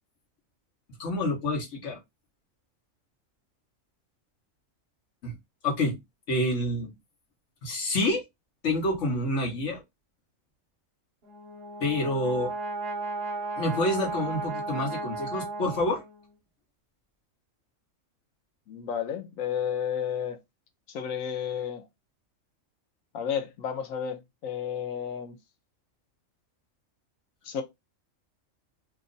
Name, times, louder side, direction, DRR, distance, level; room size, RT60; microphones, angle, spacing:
voice 1, 1.0-2.0 5.2-5.3 5.6-5.9 6.3-6.9 7.6-8.2 8.6-9.8 11.8-12.5 13.6-16.0, left 1 dB, 65° left, 1.4 m, -27 dB
Brass instrument, 11.2-16.3, right 3 dB, 50° right, 0.9 m, -35 dB
voice 2, 18.7-20.4 20.9-21.8 23.1-24.2 24.4-25.4 27.5-27.6, left 8 dB, 85° left, 1.1 m, -31 dB
2.9 x 2.4 x 3.8 m
omnidirectional pair, 1.4 m